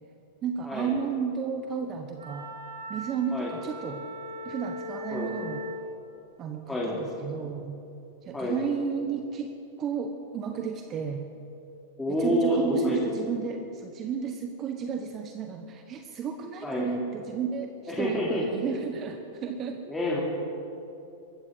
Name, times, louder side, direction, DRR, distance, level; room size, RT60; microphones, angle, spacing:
voice 1, 0.4-2.5 2.9-4.0 4.4-5.6 6.4-7.8 8.3-9.5 9.8-11.3 12.2-17.7 18.0-19.8, right 6 dB, 30° right, 5 dB, 1.1 m, -32 dB
Wind instrument woodwind instrument, 2.1-5.9, equal, 75° right, 3.7 m, -39 dB
voice 2, 12.0-13.2 16.6-16.9 17.9-18.4 19.9-20.2, equal, 10° left, -6 dB, 3.3 m, -28 dB
21.0 x 15.0 x 4.0 m, 2.7 s
figure-of-eight pair, 100°, 0 cm